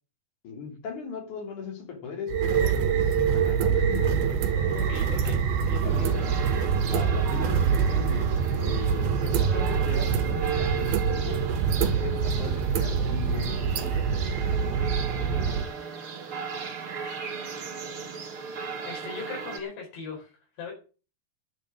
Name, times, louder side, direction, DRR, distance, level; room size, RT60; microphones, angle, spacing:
voice 1, 0.4-4.4 5.8-6.2 6.9-11.5 11.8-14.1, left 4 dB, 50° left, 4.5 m, -38 dB
sound 1, 2.3-15.6, right 6 dB, 75° right, 3.0 m, -25 dB
voice 2, 4.7-6.3 18.8-20.3 20.6-20.7, left 4 dB, 75° left, 6.9 m, -39 dB
sound 2, 5.9-19.6, right 5 dB, 45° right, 2.1 m, -37 dB
11.0 x 7.8 x 7.5 m
omnidirectional pair, 4.9 m